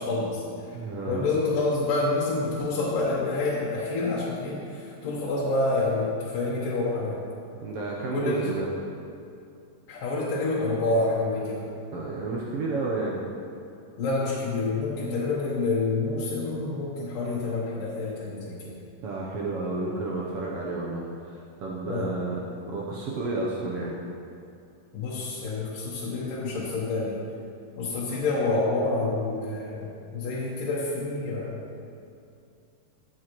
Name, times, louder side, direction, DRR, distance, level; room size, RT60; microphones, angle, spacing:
voice 1, 0.0-0.8 1.1-7.2 8.1-8.5 9.9-11.7 14.0-18.8 21.8-22.1 24.9-27.2 27.8-31.6, left 2 dB, 80° left, -7 dB, 2.8 m, -28 dB
voice 2, 0.7-1.2 7.6-8.7 11.9-13.2 19.0-22.4 22.7-24.0, right 3 dB, 85° right, -4 dB, 1.3 m, -31 dB
14.5 x 7.4 x 3.1 m, 2.5 s
omnidirectional pair, 3.8 m